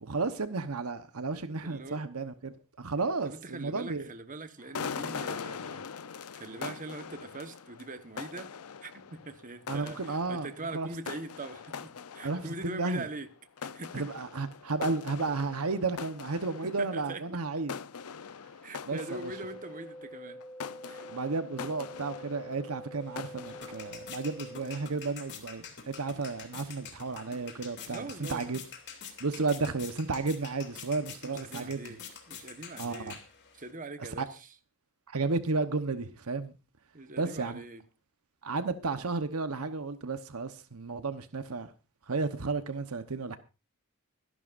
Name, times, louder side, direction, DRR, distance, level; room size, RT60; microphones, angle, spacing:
voice 1, 0.0-4.1 9.7-10.5 10.7-10.9 12.2-13.1 13.9-17.7 18.9-19.3 21.1-28.6 29.2-31.9 32.8-33.2 34.0-34.3 35.1-36.5 37.2-37.6 38.4-41.7 42.1-43.4, right 3 dB, 75° right, 1.1 m, -33 dB
voice 2, 1.6-2.0 3.2-5.8 6.1-8.5 8.8-13.3 13.6-14.1 16.6-17.4 18.6-20.4 20.8-21.1 27.9-28.5 31.2-33.2 33.5-34.5 36.9-37.8, right 2 dB, 35° right, 1.3 m, -42 dB
sound 1, 4.6-13.3 13.6-20.1 20.4-23.9, left 6 dB, 85° left, 0.7 m, -42 dB
sound 2, 18.9-24.9, equal, 10° left, 1.5 m, -47 dB
sound 3, 23.0-33.7, left 7 dB, 55° left, 2.9 m, -47 dB
25.0 x 11.5 x 2.6 m
head